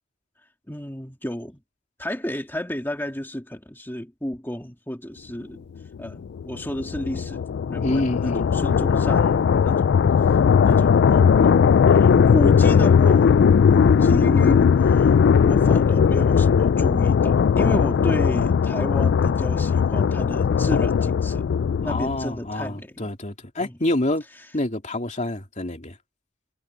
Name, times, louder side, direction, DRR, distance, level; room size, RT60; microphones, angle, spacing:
voice 1, 0.7-1.6 2.0-5.7 6.0-7.4 7.7-10.4 10.6-13.4 13.7-15.1 15.4-21.5 21.8-22.9 23.6-23.8, equal, 10° left, 2.1 m, -32 dB
sound 1, 6.1-22.3, left 6 dB, 55° left, 0.3 m, -18 dB
voice 2, 7.8-8.5 21.8-24.2 24.5-26.0, left 1 dB, 35° left, 2.8 m, -27 dB
head